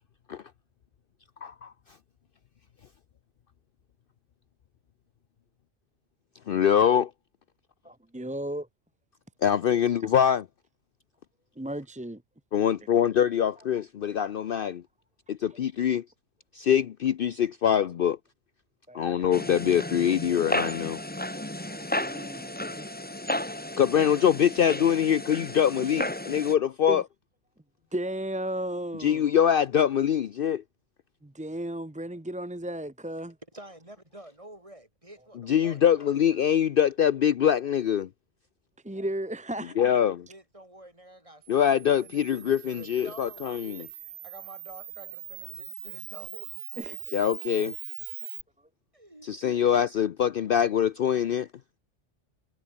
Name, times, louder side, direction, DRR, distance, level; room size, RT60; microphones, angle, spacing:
voice 1, 1.4-1.7 6.5-7.1 9.4-10.4 12.5-14.8 15.3-16.0 16.5-18.2 18.9-21.0 23.8-27.0 29.0-30.6 35.5-38.1 39.8-40.2 41.5-43.8 47.1-47.7 49.2-51.5, left 9 dB, 55° left, 0.7 m, -24 dB
voice 2, 7.8-8.7 11.6-12.2 15.5-15.6 18.9-19.1 20.3-20.4 21.0-21.1 21.4-22.9 25.8-26.0 26.9-27.0 27.9-29.3 31.2-33.4 38.8-39.7 46.8-47.2, right 1 dB, 10° right, 0.6 m, -35 dB
sound 1, 19.3-26.6, left 1 dB, 10° left, 1.3 m, -33 dB
voice 3, 33.5-36.1 38.9-39.2 39.6-40.0 40.3-43.5 43.8-46.7 48.9-49.7, right 1 dB, 25° right, 5.0 m, -50 dB
Camera, 41.4-48.4, right 13 dB, 75° right, 0.9 m, -41 dB
omnidirectional pair, 1.2 m